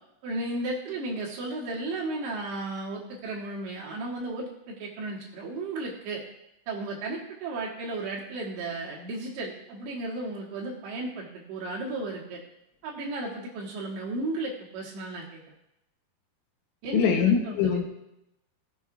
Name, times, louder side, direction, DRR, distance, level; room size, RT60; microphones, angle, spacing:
voice 1, 0.2-6.2 6.7-12.4 12.8-15.4 16.8-17.8, right 2 dB, 70° right, -4 dB, 3.6 m, -34 dB
voice 2, 16.9-17.8, left 7 dB, 80° left, 3 dB, 3.6 m, -23 dB
19.0 x 7.0 x 2.5 m, 0.86 s
omnidirectional pair, 5.9 m